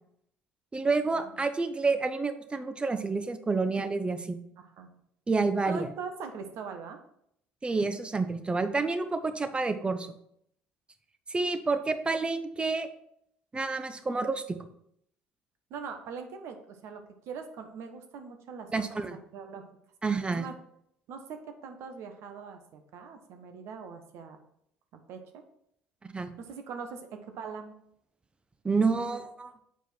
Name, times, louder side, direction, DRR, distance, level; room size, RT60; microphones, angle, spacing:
voice 1, 0.7-4.4 5.3-5.9 7.6-10.1 11.3-12.9 13.5-14.6 18.7-19.2 20.0-20.5 26.0-26.3 28.6-29.5, right 4 dB, 20° right, 9 dB, 0.7 m, -29 dB
voice 2, 4.6-4.9 5.7-7.0 15.7-19.6 20.3-20.5 21.1-24.4 24.9-25.4 26.4-27.8 28.9-29.2, right 5 dB, 60° right, 6 dB, 1.0 m, -42 dB
7.2 x 4.6 x 4.3 m, 0.72 s
hypercardioid pair, 55°, 5 cm